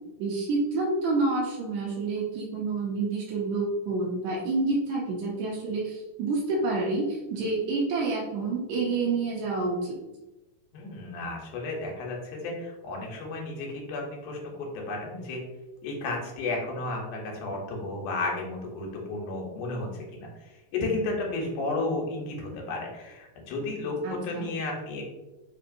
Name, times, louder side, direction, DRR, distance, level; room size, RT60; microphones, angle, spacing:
voice 1, 0.2-10.0 24.0-24.5, right 3 dB, 80° right, -2 dB, 1.7 m, -28 dB
voice 2, 10.7-15.4 15.8-25.0, left 2 dB, 80° left, 0 dB, 2.3 m, -33 dB
5.1 x 2.8 x 2.5 m, 1.0 s
omnidirectional pair, 3.7 m